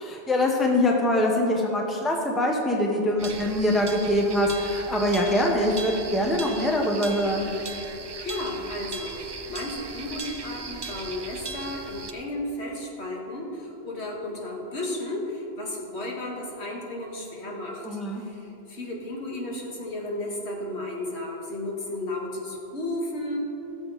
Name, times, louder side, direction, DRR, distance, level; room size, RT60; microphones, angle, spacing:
voice 1, 0.3-7.5 17.8-18.2, left 1 dB, ahead, 0 dB, 0.9 m, -23 dB
sound 1, 3.2-12.1, right 3 dB, 35° right, 0.4 m, -38 dB
voice 2, 8.2-23.4, left 1 dB, 80° left, -2 dB, 2.1 m, -33 dB
17.5 x 7.0 x 4.1 m, 2.9 s
omnidirectional pair, 1.1 m